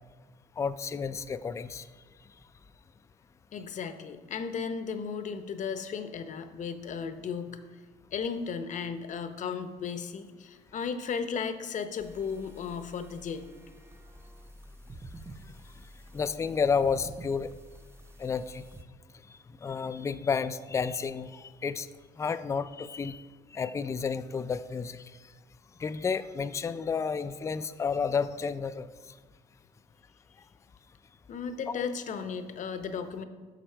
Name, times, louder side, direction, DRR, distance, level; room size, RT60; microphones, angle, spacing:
voice 1, 0.6-1.9 16.1-17.5 18.2-18.6 19.6-21.9 22.2-23.2 23.5-25.0 25.8-28.9 31.7-31.9, left 5 dB, 15° left, 12 dB, 0.3 m, -31 dB
voice 2, 3.5-7.6 8.1-13.6 31.3-33.2, left 6 dB, 45° left, 10 dB, 0.7 m, -35 dB
sound 1, 12.0-18.8, right 1 dB, 15° right, 0.7 m, -49 dB
9.8 x 6.3 x 4.5 m, 1.4 s
cardioid pair, 110°, 17 cm